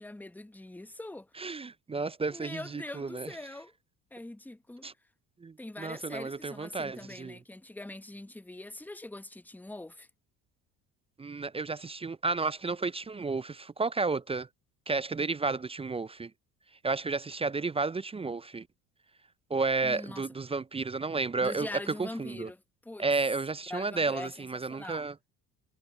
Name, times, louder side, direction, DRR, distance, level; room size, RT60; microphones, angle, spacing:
voice 1, 0.0-1.3 2.3-3.7 4.1-4.9 5.6-10.1 19.8-20.2 21.4-23.1 23.7-25.0, left 2 dB, 5° left, 1.1 m, -43 dB
voice 2, 1.4-3.3 4.8-4.9 5.4-7.4 11.2-14.5 14.9-16.3 16.8-18.7 19.5-22.5 23.0-25.1, right 3 dB, 15° right, 0.5 m, -32 dB
figure-of-eight pair, 60°, 48 cm